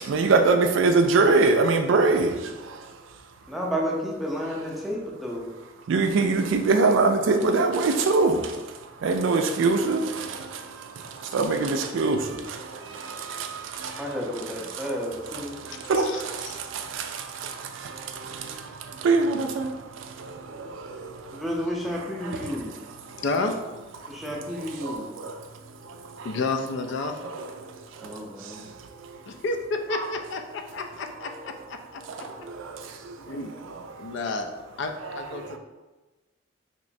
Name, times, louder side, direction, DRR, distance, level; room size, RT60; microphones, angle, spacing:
voice 1, 0.1-2.3 5.9-8.4 9.0-10.0 11.3-12.2 15.9-16.1 19.0-19.7, right 3 dB, 80° right, 0.3 m, -21 dB
voice 2, 3.5-5.5 14.0-15.6 21.3-22.8 24.1-25.1 28.0-28.6, equal, ahead, 0.5 m, -31 dB
voice 3, 16.0-16.6 20.2-20.3 23.2-23.5 26.2-27.1 29.3-32.2 33.2-35.6, left 3 dB, 65° left, 0.4 m, -31 dB
3.2 x 2.9 x 2.6 m
head